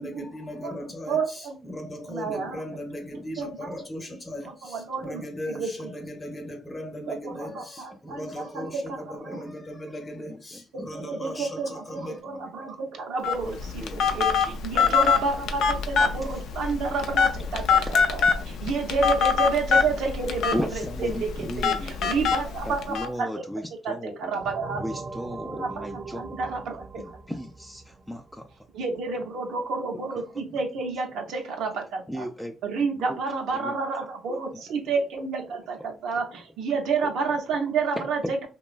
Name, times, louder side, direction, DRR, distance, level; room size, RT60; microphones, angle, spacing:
voice 1, 0.0-12.2, left 1 dB, 30° left, 0.9 m, -37 dB
voice 2, 1.1-1.6 2.1-2.6 3.4-3.8 4.4-5.9 7.1-9.4 10.7-23.3 23.8-24.8 25.4-27.2 28.7-32.3 32.6-38.5, right 4 dB, 80° right, 0.7 m, -30 dB
voice 3, 10.2-10.6 12.3-12.5 13.4-14.6 14.8-14.9 20.5-22.1 22.7-24.4 24.8-26.2 27.0-28.7 32.1-32.5 33.1-33.2 33.5-33.7 38.2-38.5, equal, 5° left, 0.3 m, -35 dB
Telephone, 13.2-23.1, left 6 dB, 80° left, 0.4 m, -24 dB
sound 1, 24.4-28.8, right 3 dB, 45° right, 0.6 m, -40 dB
2.9 x 2.2 x 2.4 m
cardioid pair, 90°, 0 cm